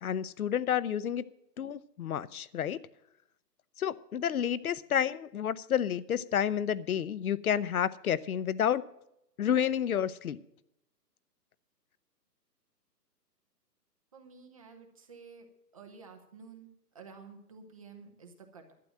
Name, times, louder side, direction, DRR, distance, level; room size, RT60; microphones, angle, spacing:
voice 1, 0.0-1.2 1.6-2.8 3.8-8.8 9.4-10.4, left 9 dB, 60° left, 19 dB, 0.7 m, -30 dB
voice 2, 14.1-15.5 15.7-18.7, right 5 dB, 20° right, 4 dB, 0.8 m, -51 dB
12.0 x 7.7 x 7.6 m, 0.81 s
hypercardioid pair, 165°, 49 cm